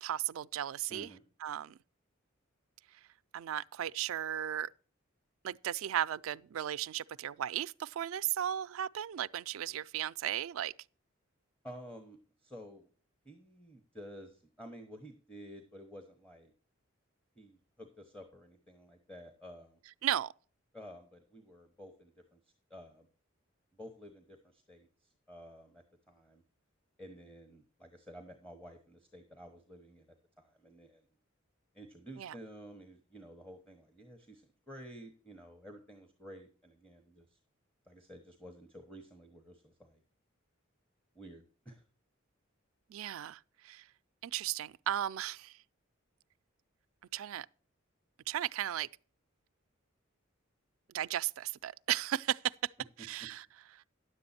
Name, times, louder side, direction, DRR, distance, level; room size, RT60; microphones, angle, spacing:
voice 1, 0.0-1.1 1.4-1.8 3.3-4.7 5.4-10.7 20.0-20.3 32.2-32.3 42.9-43.8 44.2-45.6 47.1-47.5 48.3-48.9 50.9-52.7 53.0-53.4, right 11 dB, 80° right, 0.4 m, -35 dB
voice 2, 0.9-1.2 11.6-12.9 13.2-16.5 17.3-19.8 20.7-23.1 23.7-26.4 27.0-31.0 31.7-37.4 37.8-40.0 41.1-41.8, equal, 5° left, 1.0 m, -52 dB
10.0 x 7.8 x 4.2 m
head